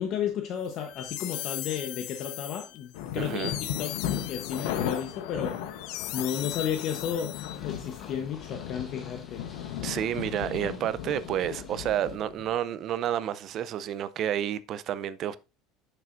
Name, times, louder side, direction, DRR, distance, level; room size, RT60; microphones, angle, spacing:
voice 1, 0.0-5.6 6.1-7.3 7.6-9.4, left 8 dB, 45° left, 1.0 m, -33 dB
sound 1, 0.7-7.9, left 16 dB, 65° left, 0.5 m, -39 dB
sound 2, 2.9-12.6, left 10 dB, 80° left, 1.0 m, -36 dB
voice 2, 3.2-3.6 9.8-15.4, right 10 dB, 40° right, 0.5 m, -30 dB
Purr, 7.3-12.2, left 3 dB, 20° left, 1.3 m, -51 dB
10.5 x 6.8 x 2.6 m
cardioid pair, 150°, 0 cm